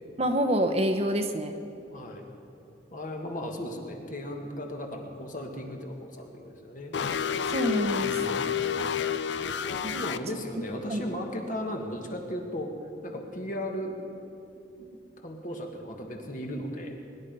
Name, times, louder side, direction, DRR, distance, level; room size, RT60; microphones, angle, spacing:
voice 1, 0.2-1.5 7.5-8.1 9.8-9.9 10.9-11.0, equal, 35° right, 5 dB, 0.8 m, -26 dB
voice 2, 1.9-2.3 2.9-6.9 8.0-8.7 9.9-12.7 13.0-14.0 14.8-14.9 15.2-17.0, equal, 45° left, 2 dB, 1.7 m, -36 dB
sound 1, 6.9-10.2, left 7 dB, 70° left, 0.5 m, -29 dB
22.0 x 10.5 x 5.4 m, 2.6 s
head